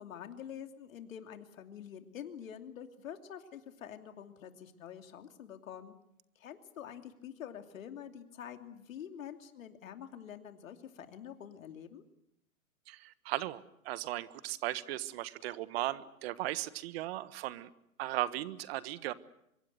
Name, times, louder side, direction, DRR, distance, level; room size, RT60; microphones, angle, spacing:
voice 1, 0.0-5.9 6.4-12.0, left 9 dB, 70° left, 6 dB, 2.9 m, -47 dB
voice 2, 12.9-17.7 18.0-19.1, right 15 dB, 45° right, 15 dB, 1.5 m, -37 dB
25.0 x 23.0 x 8.0 m, 0.80 s
hypercardioid pair, 130°, 42 cm